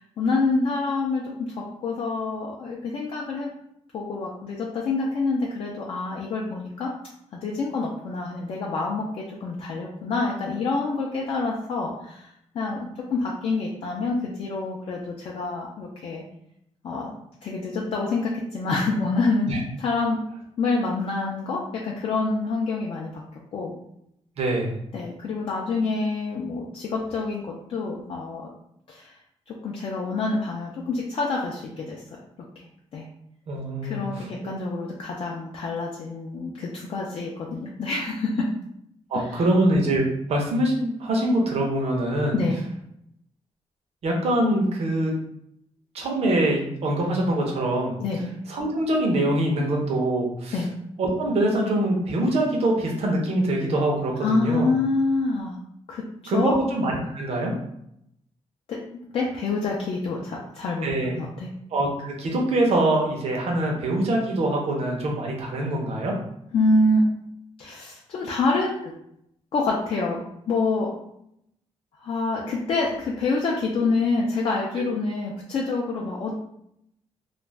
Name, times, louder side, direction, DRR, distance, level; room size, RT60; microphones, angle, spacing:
voice 1, 0.0-3.5 3.9-6.9 7.4-16.2 16.8-17.1 17.4-19.5 19.8-20.2 20.6-23.2 23.5-23.7 24.9-28.5 28.9-29.2 29.5-32.0 32.6-32.7 32.9-33.1 33.8-38.5 39.1-39.4 42.3-42.6 48.0-48.3 50.5-50.7 54.2-55.6 55.9-56.6 58.7-58.8 59.1-61.5 66.5-67.1 67.6-69.0 69.5-70.9 72.0-76.5, left 3 dB, 50° left, -3 dB, 0.4 m, -27 dB
voice 2, 24.4-24.7 33.5-34.5 39.1-42.4 44.0-45.1 45.9-47.9 48.5-50.5 51.0-54.7 56.3-57.5 60.8-61.2 61.7-66.1 74.8-74.9, right 1 dB, 60° right, 0 dB, 0.7 m, -24 dB
2.4 x 2.1 x 3.2 m, 0.75 s
wide cardioid pair, 165°, 12 cm